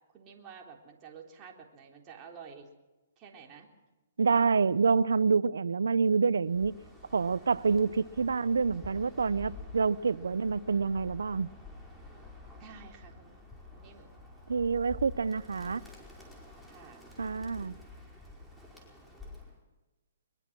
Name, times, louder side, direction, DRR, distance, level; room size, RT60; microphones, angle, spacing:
voice 1, 0.1-2.7 3.2-3.7 12.6-13.4 13.7-14.1 16.7-17.1, right 6 dB, 25° right, 3.7 m, -50 dB
voice 2, 4.2-6.8 7.1-11.5 14.5-15.8 17.2-17.7, right 5 dB, 90° right, 0.8 m, -27 dB
Bird, 6.5-19.6, left 2 dB, ahead, 5.1 m, -49 dB
22.5 x 22.0 x 6.2 m
hypercardioid pair, 140°, 0 cm